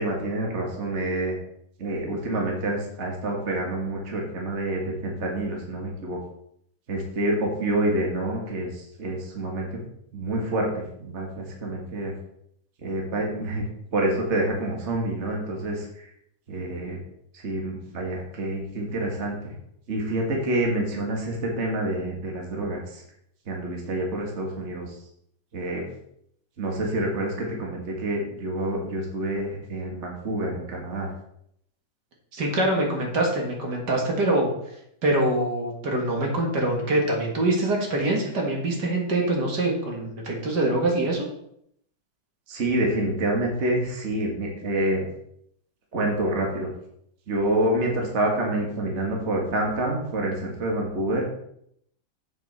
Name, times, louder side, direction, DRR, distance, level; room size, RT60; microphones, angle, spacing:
voice 1, 0.0-1.4 1.8-6.2 6.9-9.8 10.1-12.1 12.8-13.6 13.9-16.1 16.5-17.0 17.3-19.5 19.9-23.0 23.5-24.9 25.5-25.8 26.6-31.1 42.5-45.1 45.9-46.7 47.3-51.2, right 1 dB, 40° right, 0 dB, 1.8 m, -27 dB
voice 2, 32.3-34.5 35.0-41.3, right 1 dB, 60° right, 0 dB, 2.4 m, -24 dB
8.1 x 7.8 x 4.1 m, 0.72 s
omnidirectional pair, 2.1 m